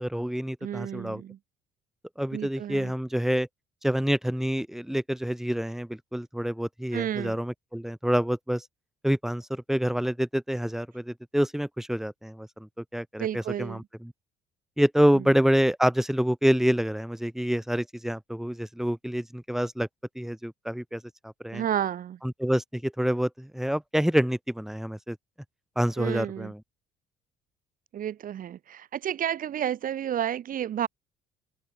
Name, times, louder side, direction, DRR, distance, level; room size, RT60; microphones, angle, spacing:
voice 1, 0.0-1.2 2.2-3.5 3.8-8.6 9.0-14.1 14.8-19.9 20.1-21.6 22.2-25.2 25.8-26.6, equal, ahead, 2.6 m, -27 dB
voice 2, 0.6-1.4 2.3-2.9 6.9-7.4 13.2-13.8 15.1-15.2 21.5-22.2 26.0-26.5 27.9-30.9, right 10 dB, 55° right, 3.2 m, -31 dB
open air
cardioid pair, 110°, 17 cm